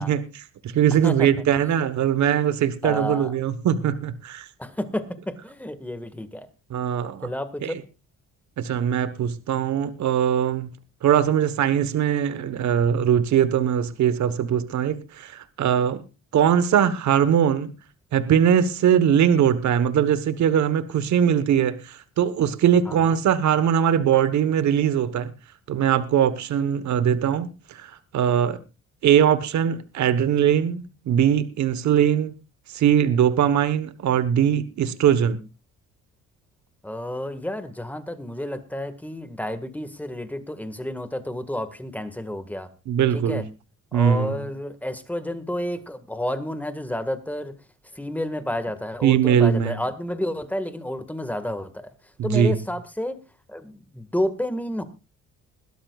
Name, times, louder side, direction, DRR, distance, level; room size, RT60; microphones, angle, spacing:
voice 1, 0.0-4.5 6.7-7.3 7.6-7.8 8.6-10.7 11.0-16.0 16.3-17.7 18.1-25.3 25.7-28.6 29.0-32.3 32.7-35.4 42.9-43.4 43.9-44.5 49.0-49.7 52.2-52.6, right 9 dB, 70° right, 13 dB, 1.3 m, -21 dB
voice 2, 2.8-3.3 4.6-6.5 7.2-7.7 22.9-23.2 36.8-42.7 43.1-43.4 43.9-47.5 47.9-51.9 52.2-53.2 53.5-54.8, left 1 dB, 5° left, 10 dB, 1.8 m, -30 dB
21.0 x 13.0 x 2.4 m, 0.28 s
cardioid pair, 90°, 30 cm